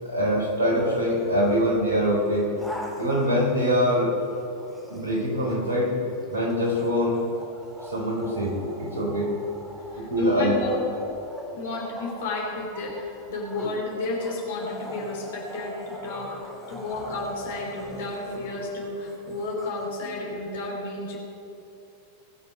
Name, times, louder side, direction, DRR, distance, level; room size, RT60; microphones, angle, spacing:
voice 1, 0.0-2.5 3.0-4.1 4.9-5.9 6.3-7.2 7.8-9.3 10.0-10.8, equal, 70° right, -1 dB, 3.3 m, -24 dB
sound 1, 1.2-1.6 2.1-4.2 4.6-20.1, equal, 5° right, 2.2 m, -41 dB
voice 2, 9.9-10.8 11.5-21.2, left 2 dB, 55° left, -1 dB, 3.0 m, -32 dB
20.0 x 6.7 x 5.3 m, 2.9 s
figure-of-eight pair, 90°, 0 cm